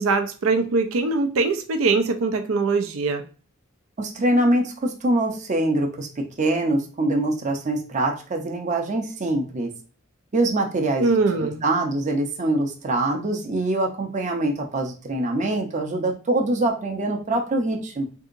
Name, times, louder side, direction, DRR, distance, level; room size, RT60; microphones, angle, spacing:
voice 1, 0.0-3.2 11.0-11.6, right 3 dB, 85° right, 6 dB, 0.5 m, -22 dB
voice 2, 4.0-9.7 10.3-18.1, right 1 dB, 35° right, 2 dB, 0.6 m, -24 dB
3.7 x 2.7 x 2.5 m, 0.36 s
head